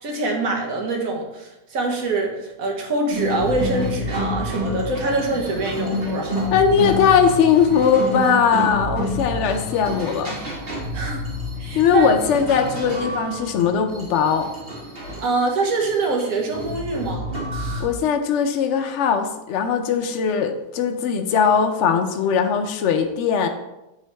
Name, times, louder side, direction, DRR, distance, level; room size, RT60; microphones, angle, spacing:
voice 1, 0.0-2.3 2.6-6.4 10.9-11.3 11.6-12.1 15.2-17.3, right 3 dB, 60° right, 1 dB, 1.4 m, -24 dB
sound 1, 3.1-17.8, equal, 35° right, 2.0 m, -29 dB
voice 2, 6.5-10.4 11.7-14.5 17.8-23.5, left 7 dB, 65° left, 5 dB, 0.7 m, -19 dB
9.0 x 3.8 x 3.4 m, 0.96 s
omnidirectional pair, 1.7 m